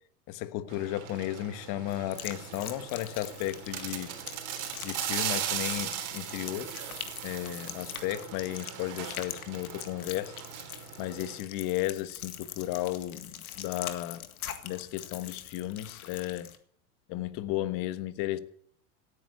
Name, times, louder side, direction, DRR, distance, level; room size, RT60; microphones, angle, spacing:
voice 1, 0.3-4.1 4.8-10.3 11.0-14.3 14.6-16.5 17.1-18.4, left 15 dB, 50° left, 1.4 m, -34 dB
sound 1, 0.7-11.4, right 10 dB, 45° right, 3.6 m, -38 dB
sound 2, 1.9-16.6, left 11 dB, 85° left, 2.0 m, -43 dB
17.0 x 9.8 x 8.3 m
hypercardioid pair, 115°, 42 cm